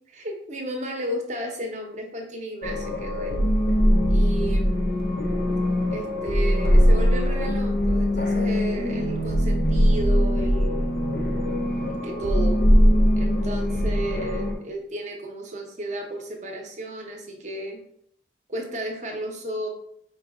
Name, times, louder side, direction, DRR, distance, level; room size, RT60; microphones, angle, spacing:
voice 1, 0.1-3.4 4.1-5.0 5.9-10.9 11.8-12.7 13.2-17.8 18.5-19.7, right 1 dB, 40° right, 2 dB, 0.7 m, -33 dB
sound 1, 2.6-14.5, equal, 50° left, 0.6 m, -21 dB
4.7 x 2.2 x 3.4 m, 0.70 s
head